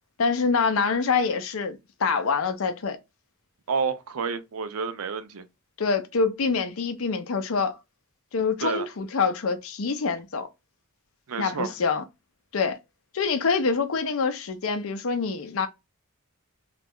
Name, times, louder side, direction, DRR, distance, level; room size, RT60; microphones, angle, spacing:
voice 1, 0.2-3.0 5.8-7.8 8.3-10.5 11.4-12.0 12.5-12.8 13.1-15.7, left 5 dB, 65° left, 0.5 m, -25 dB
voice 2, 3.7-5.4 8.6-8.9 11.3-11.7, right 5 dB, 75° right, 0.5 m, -29 dB
2.4 x 2.0 x 3.5 m
head